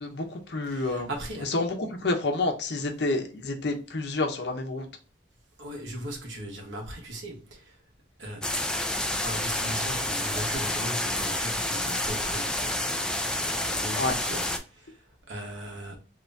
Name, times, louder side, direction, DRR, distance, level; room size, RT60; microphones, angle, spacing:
voice 1, 0.0-1.1 1.4-4.9 14.0-14.1, left 2 dB, 60° left, 0.8 m, -29 dB
voice 2, 0.7-1.5 5.6-7.8 8.2-8.6 8.9-12.9 13.2-16.0, right 1 dB, 80° right, 1.3 m, -38 dB
sound 1, 8.4-14.6, left 1 dB, 5° left, 0.4 m, -29 dB
3.0 x 2.7 x 3.4 m
head